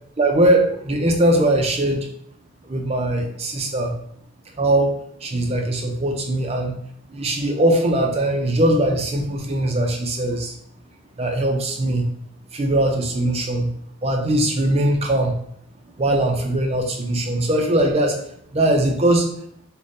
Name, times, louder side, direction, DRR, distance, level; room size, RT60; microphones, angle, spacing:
voice 1, 0.2-2.1 2.6-3.9 4.6-6.8 7.1-10.5 11.2-12.1 12.5-13.7 14.0-15.3 16.0-18.2 18.5-19.3, right 1 dB, 30° right, 3 dB, 0.5 m, -20 dB
4.9 x 2.2 x 2.6 m, 0.68 s
head